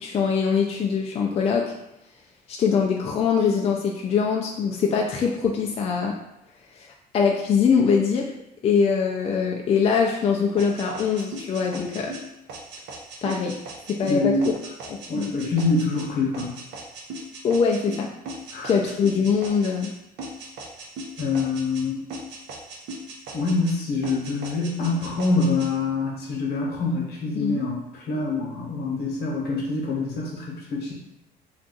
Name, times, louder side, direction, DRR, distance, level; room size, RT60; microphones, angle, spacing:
voice 1, 0.0-1.7 2.5-6.2 6.8-6.9 7.1-8.3 8.6-12.1 13.2-13.6 13.9-14.5 14.9-15.4 17.4-18.1 18.6-19.9 27.4-27.6, left 6 dB, 35° left, 0 dB, 0.4 m, -23 dB
sound 1, 10.6-19.9 20.2-21.8 22.1-23.8 24.0-25.7, right 2 dB, 80° right, 0.7 m, -38 dB
voice 2, 14.1-14.5 15.1-16.6 18.5-18.7 21.2-22.0 23.3-27.8 28.1-30.9, left 3 dB, 70° left, -2 dB, 0.9 m, -25 dB
2.6 x 2.4 x 3.8 m, 0.86 s
cardioid pair, 110°, 17 cm